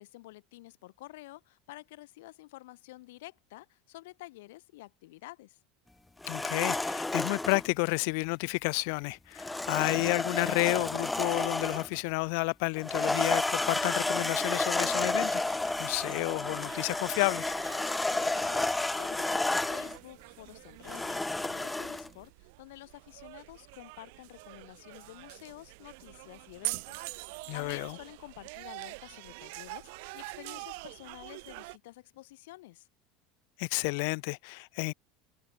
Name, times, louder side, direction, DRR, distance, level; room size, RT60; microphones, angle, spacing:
voice 1, 0.0-5.6 18.1-32.9, left 19 dB, 85° left, 6.2 m, -50 dB
sound 1, 6.2-7.7 9.4-12.0 12.8-20.0 20.9-22.1, left 2 dB, 5° left, 0.5 m, -31 dB
voice 2, 6.3-17.5 27.5-28.0 33.6-34.9, left 34 dB, 60° left, 1.8 m, -31 dB
sound 2, 14.7-31.8, right 29 dB, 65° right, 1.7 m, -45 dB
cardioid pair, 165°, 0 cm